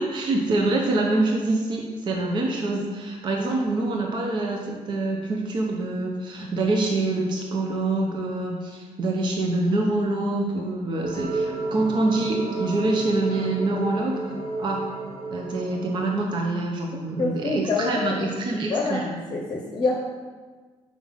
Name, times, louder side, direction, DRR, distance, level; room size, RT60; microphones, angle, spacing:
voice 1, 0.0-14.2 14.6-14.8 15.3-19.2, right 2 dB, 40° right, 0 dB, 0.8 m, -25 dB
sound 1, 11.0-16.1, right 3 dB, 65° right, 2.0 m, -31 dB
voice 2, 17.2-20.0, left 3 dB, 35° left, -1 dB, 0.8 m, -27 dB
5.6 x 4.8 x 5.6 m, 1.4 s
cardioid pair, 145°, 12 cm